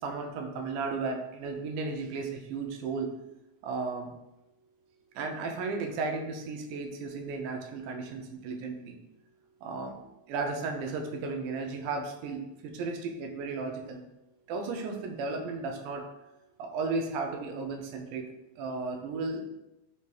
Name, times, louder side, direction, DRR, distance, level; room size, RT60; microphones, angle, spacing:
voice 1, 0.0-3.1 3.6-4.1 5.2-9.0 9.6-10.0 10.3-14.0 14.5-16.0 16.6-18.3 18.6-19.4, right 4 dB, 85° right, 3 dB, 2.1 m, -34 dB
5.5 x 2.2 x 3.1 m, 0.94 s
omnidirectional pair, 3.6 m